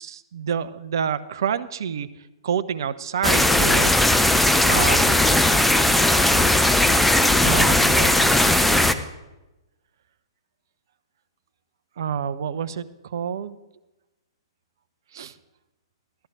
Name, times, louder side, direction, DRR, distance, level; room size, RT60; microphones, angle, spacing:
voice 1, 0.0-2.1 2.4-4.0 4.7-5.2 7.4-8.5 12.0-13.6 15.1-15.3, right 8 dB, 55° right, 14 dB, 0.6 m, -28 dB
sound 1, 3.2-8.9, left 1 dB, 5° left, 0.6 m, -18 dB
14.5 x 12.5 x 3.5 m, 1.0 s
figure-of-eight pair, 115°, 2 cm